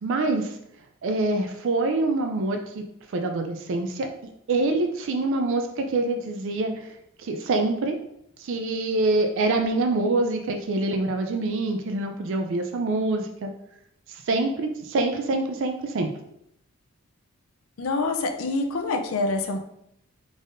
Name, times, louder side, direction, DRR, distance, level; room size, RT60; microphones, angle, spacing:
voice 1, 0.0-0.5 1.0-2.8 3.1-4.1 4.5-6.8 7.2-8.0 8.4-13.5 14.3-16.1, right 2 dB, 60° right, 4 dB, 0.4 m, -25 dB
voice 2, 17.8-19.6, left 3 dB, 75° left, 6 dB, 0.5 m, -26 dB
4.0 x 3.5 x 2.5 m, 0.77 s
head